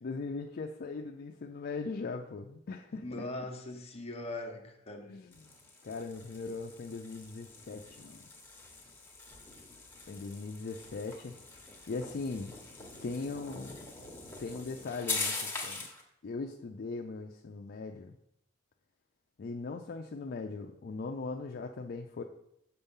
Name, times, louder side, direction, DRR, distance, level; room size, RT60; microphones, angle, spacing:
voice 1, 0.0-3.5 5.1-5.5 5.8-8.2 10.1-11.4 11.9-12.6 13.0-13.9 14.4-15.9 16.2-18.1 19.4-22.2, left 3 dB, 50° left, 0.4 m, -39 dB
voice 2, 3.0-5.1, left 2 dB, 30° left, 1.0 m, -40 dB
sound 1, 5.3-16.0, left 3 dB, 10° left, 1.2 m, -42 dB
6.8 x 4.4 x 5.5 m
head